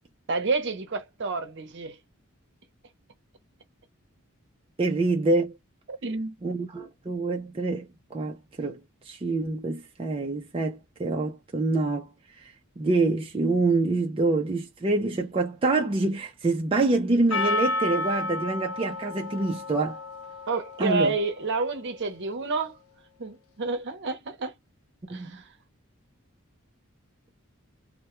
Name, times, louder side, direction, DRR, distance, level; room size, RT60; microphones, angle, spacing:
voice 1, 0.3-2.0 6.0-6.4 20.5-22.8 23.2-24.5 25.1-25.4, right 3 dB, 55° right, 0.7 m, -29 dB
voice 2, 4.8-5.6 6.4-8.8 9.1-12.1 12.8-20.0 20.8-21.2 25.1-25.3, right 3 dB, 25° right, 0.4 m, -26 dB
Percussion, 17.3-21.6, left 2 dB, 80° left, 0.6 m, -31 dB
2.2 x 2.1 x 2.9 m
head